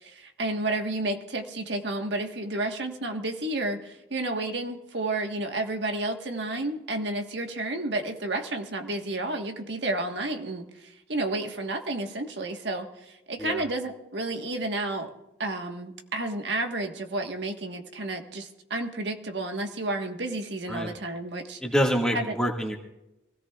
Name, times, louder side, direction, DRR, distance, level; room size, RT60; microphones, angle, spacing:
voice 1, 0.0-15.1 15.4-21.6 22.1-22.4, right 2 dB, 75° right, 4 dB, 1.4 m, -31 dB
voice 2, 21.6-22.7, equal, 5° left, -1 dB, 1.8 m, -26 dB
25.0 x 17.0 x 2.4 m, 0.93 s
head